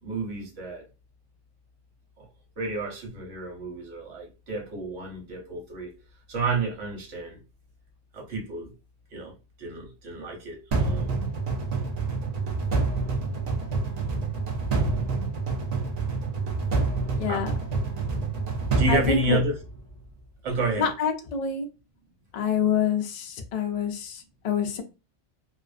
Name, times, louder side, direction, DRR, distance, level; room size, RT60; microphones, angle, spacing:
voice 1, 0.0-0.9 2.2-2.3 2.6-5.9 6.3-7.4 8.1-8.7 9.1-11.2 17.3-17.5 18.8-19.5 20.4-20.9, right 3 dB, 80° right, 1.2 m, -31 dB
sound 1, 10.7-19.9, right 3 dB, 55° right, 0.4 m, -27 dB
voice 2, 17.2-17.5 18.9-19.4 20.8-21.7 22.3-24.8, left 7 dB, 80° left, 0.3 m, -26 dB
2.5 x 2.1 x 2.4 m
omnidirectional pair, 1.2 m